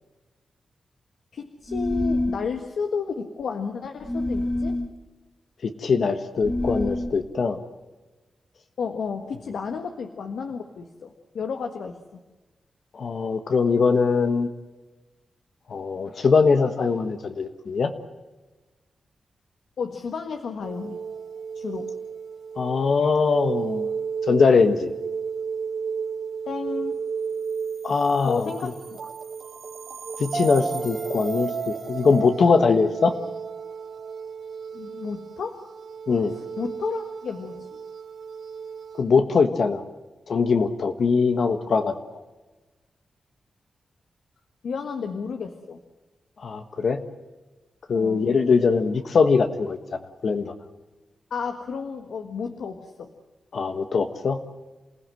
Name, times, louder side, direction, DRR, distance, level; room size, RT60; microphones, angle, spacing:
voice 1, 1.3-4.8 8.8-12.2 19.8-21.0 21.5-21.9 26.4-27.0 28.2-29.1 34.7-35.6 36.3-37.7 44.6-45.8 47.9-48.3 51.3-53.1, left 5 dB, 85° left, 5 dB, 1.6 m, -32 dB
sound 1, 1.7-2.4 4.0-4.9 6.4-7.2, left 2 dB, 10° left, 1.1 m, -26 dB
voice 2, 5.6-7.6 12.9-14.5 15.7-17.9 22.6-23.9 24.3-24.9 27.8-28.7 30.2-33.1 36.1-36.3 39.0-39.8 40.3-41.9 46.4-47.0 47.9-49.8 50.2-50.5 53.5-54.4, left 5 dB, 60° left, 7 dB, 1.4 m, -21 dB
sound 2, 20.6-39.0, right 6 dB, 70° right, 2.9 m, -33 dB
28.0 x 16.5 x 7.7 m, 1.2 s
wide cardioid pair, 125°, 0 cm